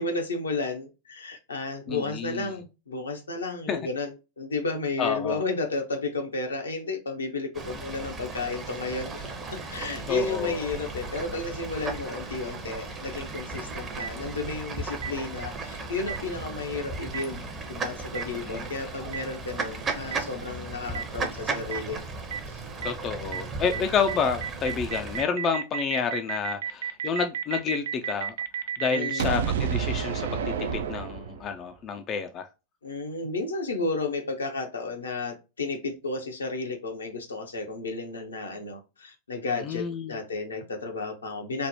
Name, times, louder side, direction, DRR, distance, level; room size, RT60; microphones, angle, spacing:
voice 1, 0.0-9.2 9.5-22.0 22.5-22.6 23.7-24.0 28.9-29.4 32.8-41.7, left 3 dB, 75° left, 0.7 m, -32 dB
voice 2, 1.9-2.5 3.7-3.8 5.0-5.4 10.1-10.7 18.5-18.6 22.8-28.3 28.8-29.4 29.7-32.5 39.6-40.2, left 6 dB, 30° left, 0.3 m, -29 dB
Fowl / Bird, 7.5-25.2, right 3 dB, 25° right, 0.6 m, -36 dB
Boom, 14.0-14.1 15.0-15.1 16.1-16.2 17.1-17.2 18.1-18.2 19.1-19.2 20.1-20.2 20.9-21.0 21.7-21.8 22.3-22.4 22.8-22.9 23.3-23.4 23.7-23.8 24.1-31.6, right 7 dB, 60° right, 0.3 m, -30 dB
3.3 x 2.1 x 2.7 m
figure-of-eight pair, 90°, 0 cm